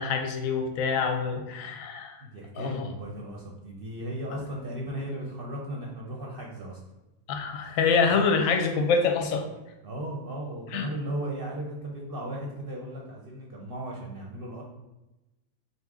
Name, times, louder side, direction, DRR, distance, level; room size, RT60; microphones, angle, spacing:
voice 1, 0.0-2.2 2.6-2.9 7.3-9.5 10.7-10.9, left 5 dB, 70° left, 5 dB, 1.0 m, -26 dB
voice 2, 2.2-6.8 9.8-14.6, right 1 dB, 50° right, -2 dB, 0.7 m, -36 dB
4.2 x 2.8 x 3.5 m, 1.0 s
omnidirectional pair, 1.6 m